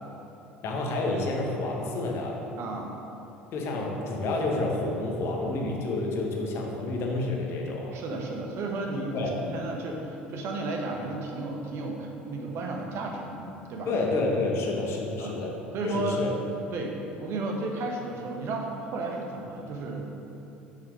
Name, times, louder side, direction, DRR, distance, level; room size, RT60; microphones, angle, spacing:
voice 1, 0.6-2.4 3.5-8.0 9.1-9.3 13.9-15.5 15.8-16.3 16.7-16.8, left 2 dB, 55° left, 0 dB, 1.3 m, -29 dB
voice 2, 2.6-2.9 7.9-13.9 14.5-14.6 15.2-15.4 15.7-16.2 16.7-16.9 17.2-20.0, right 2 dB, 55° right, 1 dB, 1.2 m, -33 dB
6.4 x 5.6 x 4.8 m, 2.9 s
hypercardioid pair, 65°, 5 cm